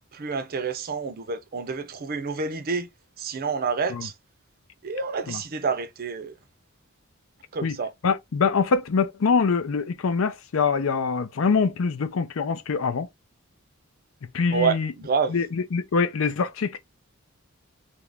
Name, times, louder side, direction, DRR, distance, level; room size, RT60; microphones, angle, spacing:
voice 1, 0.1-2.9 3.2-4.1 4.8-6.4 7.5-7.9 14.5-15.4, right 5 dB, 45° right, 0.5 m, -28 dB
voice 2, 8.0-13.1 14.3-14.9 15.3-15.5 15.7-16.8, left 5 dB, 75° left, 0.5 m, -24 dB
2.9 x 2.5 x 3.3 m
head